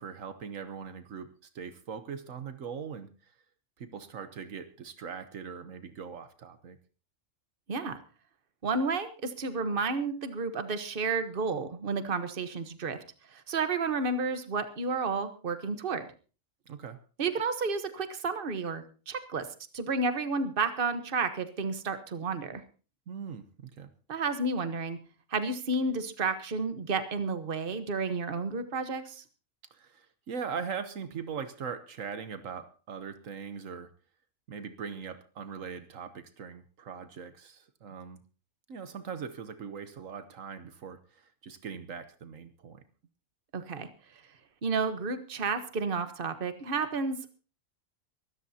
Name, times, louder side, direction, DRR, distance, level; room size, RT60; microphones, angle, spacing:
voice 1, 0.0-3.1 3.8-6.8 16.7-17.0 23.1-23.9 29.7-33.9 34.5-38.2 38.7-42.8, right 6 dB, 75° right, 10 dB, 1.4 m, -41 dB
voice 2, 7.7-8.0 8.6-13.0 13.3-16.1 17.2-19.5 19.7-22.6 24.1-25.0 25.3-29.2 43.5-43.9 44.6-47.3, right 4 dB, 45° right, 10 dB, 1.4 m, -31 dB
24.0 x 13.5 x 2.8 m, 0.36 s
omnidirectional pair, 1.4 m